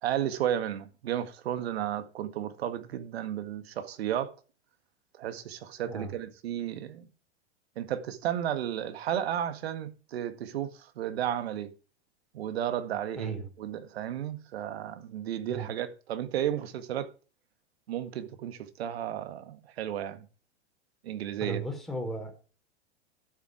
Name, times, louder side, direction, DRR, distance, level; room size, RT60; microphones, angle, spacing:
voice 1, 0.0-4.3 5.2-7.1 7.8-11.7 12.3-17.1 17.9-20.3 21.0-21.6, right 10 dB, 60° right, 1.9 m, -33 dB
voice 2, 13.2-13.5 15.5-15.7 21.4-22.4, right 3 dB, ahead, 4.4 m, -35 dB
12.5 x 8.0 x 4.7 m
figure-of-eight pair, 100°, 35 cm